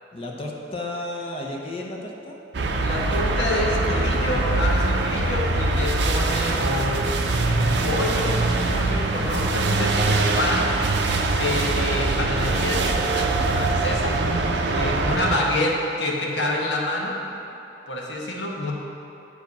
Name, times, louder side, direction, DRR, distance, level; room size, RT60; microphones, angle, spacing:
voice 1, 0.1-2.4, left 1 dB, 30° left, -1 dB, 0.8 m, -33 dB
sound 1, 2.5-15.4, right 2 dB, 70° right, 0.6 m, -23 dB
voice 2, 2.8-7.1 7.4-10.7 11.3-14.2 14.7-17.2 17.9-18.7, left 1 dB, 75° left, -2 dB, 1.2 m, -27 dB
8.0 x 4.9 x 5.3 m, 2.9 s
head